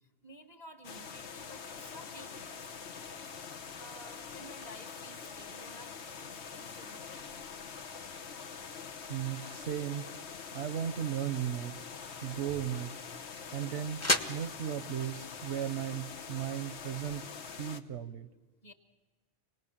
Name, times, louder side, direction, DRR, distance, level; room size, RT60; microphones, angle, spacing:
voice 1, 0.0-2.8 3.8-7.5 18.6-18.7, equal, 40° left, 6 dB, 1.8 m, -53 dB
sound 1, 0.8-17.8, left 6 dB, 80° left, 1.3 m, -45 dB
voice 2, 9.1-10.1 10.5-11.8 12.2-13.0 13.5-17.3 17.6-18.3, right 9 dB, 85° right, 14 dB, 1.2 m, -36 dB
sound 2, 12.4-17.3, left 1 dB, 15° left, 0.9 m, -38 dB
27.0 x 19.0 x 7.3 m, 1.2 s
omnidirectional pair, 1.1 m